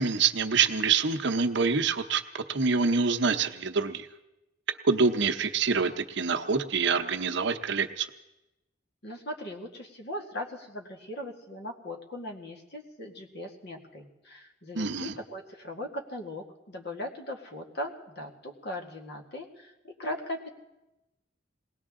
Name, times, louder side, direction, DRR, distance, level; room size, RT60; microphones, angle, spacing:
voice 1, 0.0-2.2 2.5-4.1 4.8-8.1 14.8-15.1, right 5 dB, 65° right, 7 dB, 0.8 m, -26 dB
voice 2, 9.0-20.5, left 1 dB, 60° left, 1 dB, 2.0 m, -39 dB
21.0 x 18.0 x 3.7 m, 0.97 s
head